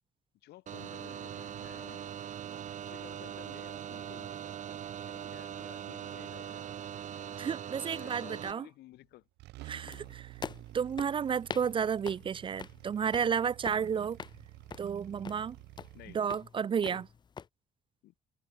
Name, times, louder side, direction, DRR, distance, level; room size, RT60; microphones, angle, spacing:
voice 1, 0.4-2.2 2.9-4.3 5.1-7.0 7.9-9.3 9.9-10.2 15.9-16.2 16.8-17.1 18.0-18.1, left 16 dB, 80° left, 2.7 m, -54 dB
sound 1, 0.7-8.5, right 9 dB, 45° right, 1.5 m, -41 dB
voice 2, 7.4-8.7 9.7-10.3 10.7-14.2 14.8-15.6 16.1-17.1, right 7 dB, 30° right, 0.4 m, -32 dB
sound 2, 8.9-9.1 9.4-16.2, right 19 dB, 85° right, 2.5 m, -51 dB
sound 3, 9.9-17.5, left 6 dB, 25° left, 0.4 m, -46 dB
cardioid pair, 110°, 17 cm